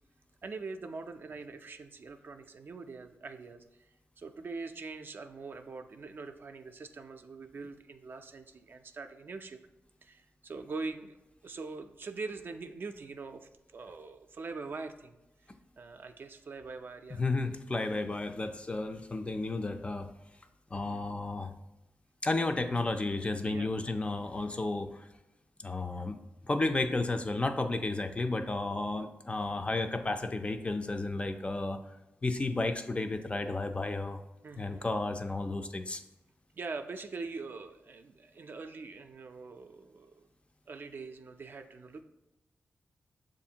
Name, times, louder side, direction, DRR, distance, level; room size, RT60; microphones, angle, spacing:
voice 1, 0.4-3.6 4.2-9.6 10.0-11.2 11.4-15.2 15.8-17.2 20.7-21.0 23.4-23.7 34.4-34.8 36.5-40.3 40.7-42.0, right 4 dB, 55° right, 7 dB, 0.4 m, -43 dB
voice 2, 17.2-20.1 20.7-21.5 22.2-25.1 25.6-26.2 26.5-31.8 32.2-34.2 34.6-36.0, left 2 dB, 25° left, 7 dB, 0.4 m, -32 dB
6.8 x 2.5 x 2.8 m, 0.99 s
cardioid pair, 80°, 4 cm